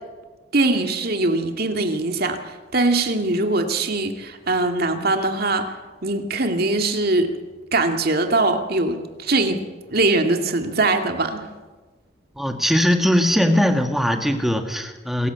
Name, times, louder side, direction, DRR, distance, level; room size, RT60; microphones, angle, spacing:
voice 1, 0.5-5.7 6.0-7.3 7.7-11.5, right 2 dB, 50° right, 5 dB, 2.2 m, -22 dB
voice 2, 12.4-15.3, equal, ahead, 5 dB, 1.7 m, -20 dB
27.0 x 14.5 x 8.2 m, 1.3 s
head